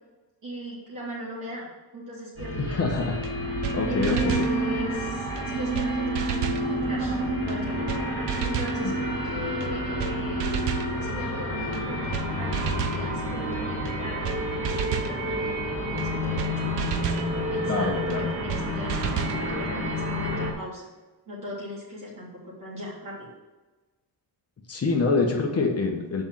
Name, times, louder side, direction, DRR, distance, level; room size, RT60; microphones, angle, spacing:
voice 1, 0.4-1.7 1.9-2.8 3.9-7.1 7.4-7.8 8.3-10.6 11.0-17.1 17.5-18.0 18.3-20.9 21.3-23.3, left 1 dB, 50° right, -7 dB, 3.3 m, -38 dB
sound 1, 2.4-20.5, equal, 30° right, 2.8 m, -29 dB
voice 2, 2.6-3.2 3.7-4.5 8.8-8.9 17.7-18.3 24.7-26.2, left 4 dB, 35° left, 1 dB, 1.2 m, -26 dB
sound 2, 3.2-3.3 3.6-3.8 4.0-4.5 5.4-5.5 5.7-5.9 6.1-6.6 7.5-7.6 7.9-8.0 8.3-8.8 9.6-9.7 10.0-10.1 10.4-10.9 11.7-11.8 12.1-12.3 12.5-13.0 13.8-13.9 14.2-14.4 14.6-15.1 16.0-16.1 16.4-16.5 16.8-17.3 18.1-18.2 18.5-18.6 18.9-19.4, right 10 dB, 85° right, 0.9 m, -31 dB
7.1 x 5.5 x 7.4 m, 1.2 s
wide cardioid pair, 165°, 41 cm